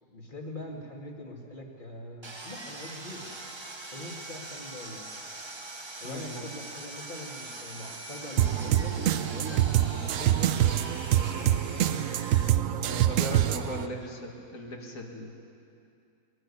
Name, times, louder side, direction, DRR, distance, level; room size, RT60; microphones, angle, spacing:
voice 1, 0.0-3.2 3.9-5.0 6.0-9.0 9.3-10.7 11.4-11.7, left 1 dB, 30° left, 0 dB, 2.4 m, -42 dB
Sawing, 2.2-12.5, right 2 dB, 20° right, 0.9 m, -42 dB
voice 2, 6.0-6.4 12.8-15.3, equal, 55° left, 1 dB, 2.5 m, -38 dB
sound 1, 8.4-13.9, right 12 dB, 65° right, 0.9 m, -25 dB
21.0 x 12.5 x 9.9 m, 2.5 s
omnidirectional pair, 1.7 m